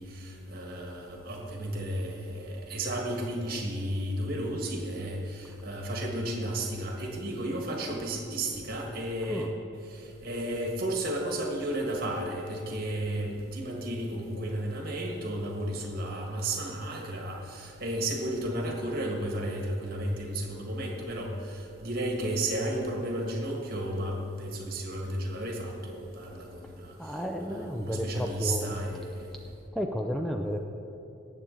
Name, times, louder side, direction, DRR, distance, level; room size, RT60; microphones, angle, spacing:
voice 1, 0.0-9.5 9.9-27.2 27.6-29.3, right 1 dB, 45° right, 0 dB, 1.6 m, -33 dB
voice 2, 9.2-9.5 26.6-26.7 27.0-28.8 29.7-30.6, equal, ahead, 2 dB, 0.4 m, -32 dB
18.0 x 7.5 x 3.9 m, 2.8 s
head